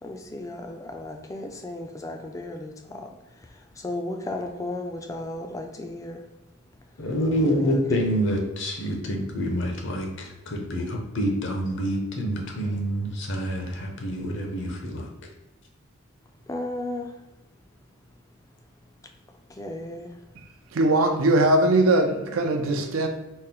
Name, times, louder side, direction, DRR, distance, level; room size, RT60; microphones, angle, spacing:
voice 1, 0.0-6.3 7.4-7.8 16.5-17.2 19.5-20.2, left 2 dB, 15° left, 0.3 m, -35 dB
voice 2, 7.0-15.0, equal, 60° left, 0.7 m, -27 dB
voice 3, 20.7-23.1, right 2 dB, 75° right, 0.5 m, -20 dB
4.2 x 2.0 x 3.7 m
head